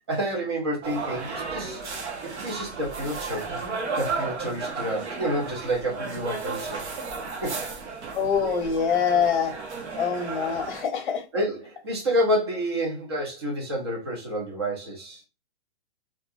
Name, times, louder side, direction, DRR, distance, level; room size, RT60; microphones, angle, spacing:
voice 1, 0.1-1.8 2.2-3.6 3.9-6.8 7.4-7.6 11.3-15.2, equal, 25° right, 0.4 m, -29 dB
sound 1, 0.8-10.8, right 4 dB, 80° right, 0.8 m, -34 dB
voice 2, 8.1-9.6 10.0-11.2, left 7 dB, 45° left, 0.8 m, -24 dB
2.4 x 2.2 x 2.6 m
hypercardioid pair, 175°, 34 cm